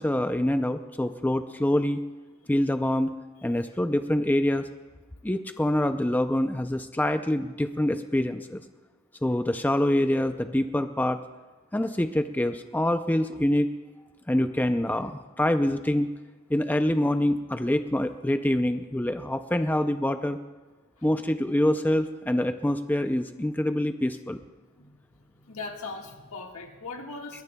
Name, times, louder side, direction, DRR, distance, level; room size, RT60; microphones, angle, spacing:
voice 1, 0.0-2.0 2.5-3.1 3.4-4.7 5.2-8.6 9.2-11.2 11.7-13.7 14.3-16.1 16.5-20.4 21.0-24.4, left 1 dB, 10° left, 8 dB, 0.4 m, -25 dB
voice 2, 25.4-27.4, left 3 dB, 80° left, 2 dB, 1.6 m, -39 dB
21.5 x 21.5 x 2.3 m, 1.3 s
head